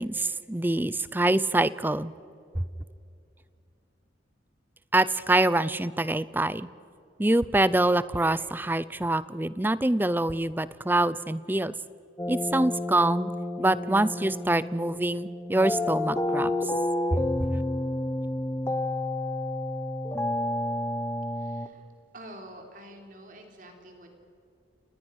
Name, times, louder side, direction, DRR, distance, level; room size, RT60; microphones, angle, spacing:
voice 1, 0.0-2.1 4.9-6.7 7.2-11.7 12.3-13.3 13.6-16.7 17.1-17.5, right 1 dB, 10° right, 17 dB, 0.5 m, -25 dB
sound 1, 12.2-21.7, left 1 dB, 15° left, 1.1 m, -30 dB
voice 2, 21.3-21.9 22.1-24.2, right 1 dB, 45° right, 3 dB, 3.6 m, -47 dB
29.5 x 19.5 x 6.4 m, 2.5 s
head